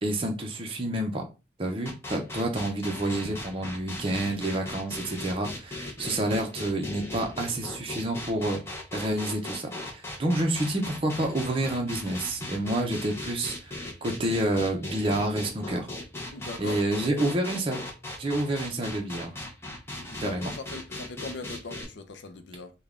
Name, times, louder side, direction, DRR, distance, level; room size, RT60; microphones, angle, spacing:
voice 1, 0.0-1.3 1.6-15.9 16.6-17.8 18.2-19.3 20.2-20.5, right 1 dB, 30° right, 0.6 m, -29 dB
sound 1, 1.9-21.9, left 1 dB, 15° left, 0.6 m, -38 dB
voice 2, 16.3-16.8 20.0-22.7, left 3 dB, 65° left, 0.5 m, -40 dB
3.4 x 2.2 x 3.6 m
head